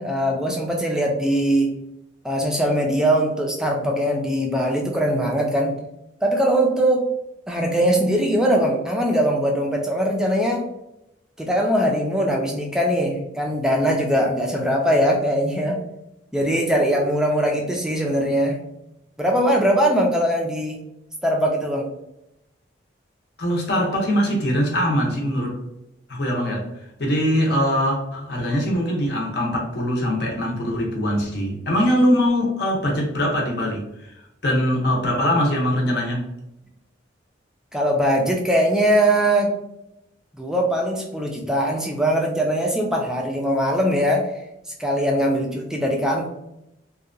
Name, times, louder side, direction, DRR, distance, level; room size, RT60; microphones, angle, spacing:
voice 1, 0.0-1.7 2.2-5.8 6.2-7.1 7.5-10.7 11.4-15.8 16.3-18.6 19.2-20.8 21.2-21.9 37.7-39.6 40.4-44.3 44.8-46.3, equal, 5° right, 0 dB, 0.3 m, -21 dB
voice 2, 23.4-25.6 26.1-26.7 27.0-36.3, equal, 55° left, -1 dB, 0.7 m, -22 dB
2.7 x 2.2 x 2.4 m, 0.86 s
head